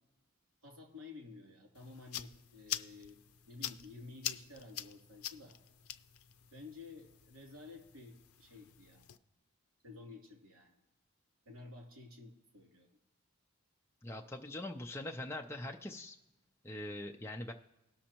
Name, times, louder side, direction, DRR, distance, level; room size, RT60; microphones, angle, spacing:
voice 1, 0.6-3.2 3.5-5.6 6.5-9.1 9.8-10.7 11.4-13.0, left 3 dB, 75° right, 0 dB, 3.0 m, -52 dB
sound 1, 1.7-9.2, left 11 dB, 85° left, 0.5 m, -46 dB
voice 2, 14.0-16.2 16.6-17.5, left 1 dB, 10° left, 2 dB, 0.4 m, -42 dB
19.0 x 6.3 x 2.9 m, 0.99 s
head